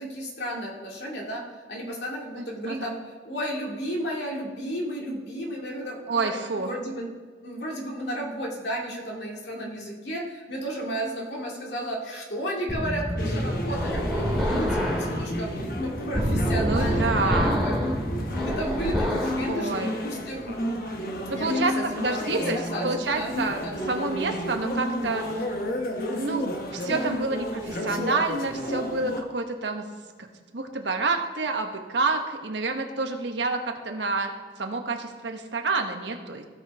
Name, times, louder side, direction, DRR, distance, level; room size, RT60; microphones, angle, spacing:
voice 1, 0.0-1.4 1.7-7.1 7.4-17.8 18.4-20.6 21.3-23.8, equal, 70° left, -2 dB, 2.2 m, -33 dB
voice 2, 2.4-2.9 6.1-6.7 16.5-17.6 19.5-19.9 21.3-22.6 22.8-23.6 23.9-25.3 26.1-29.8 30.5-36.4, right 3 dB, 80° right, 4 dB, 1.1 m, -28 dB
sound 1, 12.7-19.4, equal, ahead, 2.3 m, -27 dB
sound 2, 13.2-29.2, left 1 dB, 50° left, 1.0 m, -32 dB
16.5 x 6.0 x 3.5 m, 1.5 s
head